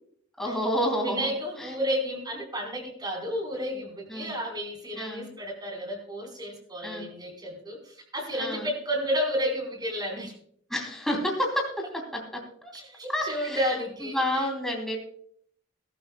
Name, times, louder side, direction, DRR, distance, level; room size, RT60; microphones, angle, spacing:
voice 1, 0.4-1.3 1.6-1.7 4.1-4.3 5.0-5.3 6.8-7.1 8.4-8.7 10.7-11.6 12.6-12.7 13.1-13.6 14.0-15.0, equal, ahead, 0 dB, 3.0 m, -29 dB
voice 2, 1.0-10.3 12.7-14.5, equal, 20° right, 1 dB, 4.4 m, -32 dB
21.0 x 12.5 x 2.3 m, 0.63 s
head